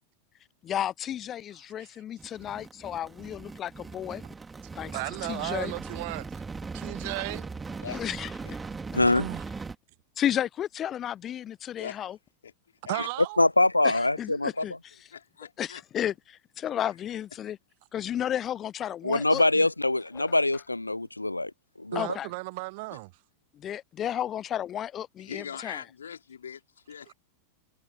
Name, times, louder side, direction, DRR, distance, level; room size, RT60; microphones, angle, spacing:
voice 1, 0.6-4.2 4.8-4.9 5.3-5.7 7.9-8.3 10.2-12.2 13.8-14.7 15.6-17.6 17.9-19.7 21.9-22.3 23.5-25.8, left 10 dB, 30° left, 0.5 m, -33 dB
sound 1, 2.2-9.8, right 4 dB, 15° right, 2.5 m, -39 dB
voice 2, 4.9-6.4 6.7-7.5 9.2-9.4 12.9-13.4 21.9-23.1 27.1-27.2, right 26 dB, 50° right, 0.4 m, -35 dB
voice 3, 7.8-8.5 11.8-12.0 12.4-12.5 12.8-13.1 13.9-14.0 14.5-14.7 15.1-15.8 25.2-27.1, left 7 dB, 70° left, 3.8 m, -41 dB
voice 4, 8.9-9.3 13.4-14.6 19.0-21.5 21.8-22.0, left 2 dB, 85° left, 0.4 m, -24 dB
sound 2, 19.1-20.7, left 33 dB, 45° left, 1.0 m, -49 dB
figure-of-eight pair, 90°, 0 cm